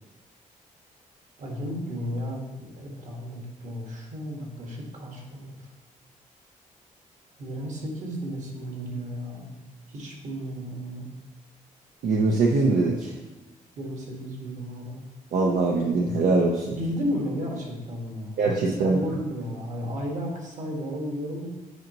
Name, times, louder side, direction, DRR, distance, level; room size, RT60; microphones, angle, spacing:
voice 1, 1.4-5.5 7.4-9.5 9.9-11.1 13.8-15.0 16.7-18.4 18.6-21.5, equal, 60° right, 0 dB, 1.8 m, -33 dB
voice 2, 12.0-13.1 15.3-16.8 18.4-19.0, right 3 dB, 80° right, -1 dB, 0.8 m, -22 dB
8.3 x 5.3 x 3.0 m, 1.1 s
cardioid pair, 130°, 14 cm